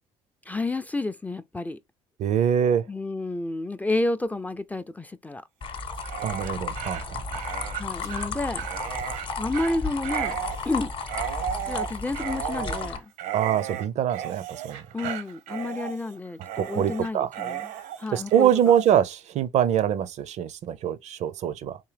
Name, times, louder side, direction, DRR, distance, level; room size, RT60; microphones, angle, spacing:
voice 1, 0.5-1.8 2.9-5.4 7.7-8.7 9.4-10.4 10.6-10.9 11.7-13.1 14.9-17.7 18.0-18.5, left 2 dB, 10° left, 0.3 m, -30 dB
voice 2, 2.2-2.9 6.2-7.4 13.3-15.2 16.5-17.3 18.1-21.8, right 9 dB, 60° right, 0.5 m, -24 dB
sound 1, 5.6-13.0, left 4 dB, 40° left, 0.8 m, -33 dB
Dog, 5.9-18.9, right 10 dB, 85° right, 0.8 m, -35 dB
3.6 x 2.7 x 3.3 m
supercardioid pair, 80°, 13 cm